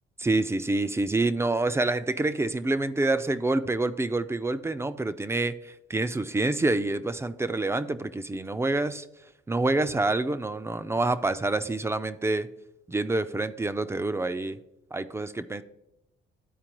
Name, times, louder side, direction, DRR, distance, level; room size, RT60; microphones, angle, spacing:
voice 1, 0.2-9.0 9.5-12.5 12.9-14.6 14.9-15.6, right 2 dB, 15° right, 13 dB, 0.3 m, -27 dB
12.0 x 4.4 x 3.0 m, 0.88 s
cardioid pair, 90°, 20 cm